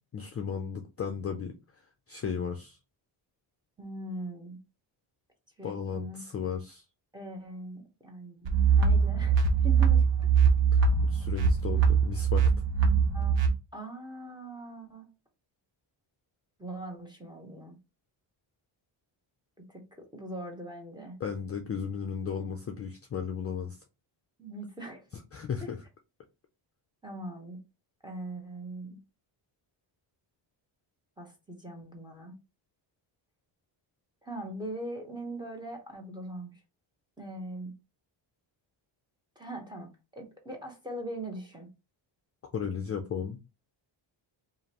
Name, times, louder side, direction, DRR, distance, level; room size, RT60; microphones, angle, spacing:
voice 1, 0.1-1.5 2.1-2.8 5.6-6.8 11.0-12.4 21.2-23.8 25.3-25.8 42.5-43.4, left 7 dB, 30° left, 0.4 m, -35 dB
voice 2, 3.8-4.6 5.6-6.2 7.1-9.4 9.6-10.3 13.1-15.1 16.6-17.8 19.7-19.8 20.1-21.2 24.4-25.0 27.0-27.6 28.0-29.0 31.2-32.3 34.2-36.5 37.2-37.7 39.4-41.7, right 1 dB, 10° right, 0.9 m, -41 dB
sound 1, 8.4-13.5, right 6 dB, 65° right, 1.1 m, -23 dB
4.9 x 2.6 x 2.9 m
wide cardioid pair, 165°, 48 cm